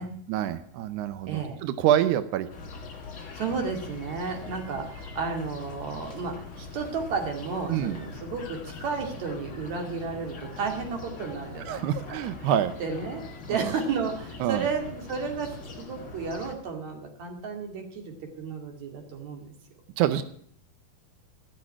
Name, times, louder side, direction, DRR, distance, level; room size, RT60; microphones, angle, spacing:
voice 1, 0.0-2.5 7.7-8.0 11.7-12.7 13.5-13.7 14.4-14.7 20.0-20.2, right 11 dB, 85° right, 11 dB, 1.7 m, -26 dB
voice 2, 1.3-1.6 3.3-11.8 12.1-12.5 12.8-19.5, right 5 dB, 50° right, 3 dB, 3.3 m, -33 dB
sound 1, 2.5-16.5, left 3 dB, 40° left, 2.7 m, -42 dB
15.0 x 6.5 x 9.6 m, 0.62 s
omnidirectional pair, 4.5 m